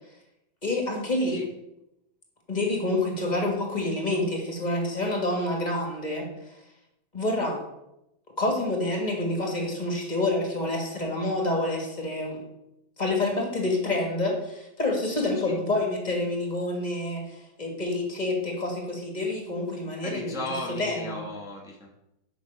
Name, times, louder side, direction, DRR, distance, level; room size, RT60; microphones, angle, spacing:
voice 1, 0.6-1.4 2.5-6.5 7.1-7.6 8.4-12.4 13.0-20.4 20.8-21.2, left 2 dB, 25° left, 1 dB, 1.4 m, -28 dB
voice 2, 20.0-22.0, left 1 dB, 5° right, -2 dB, 0.3 m, -36 dB
6.6 x 5.9 x 5.0 m, 0.87 s
omnidirectional pair, 2.2 m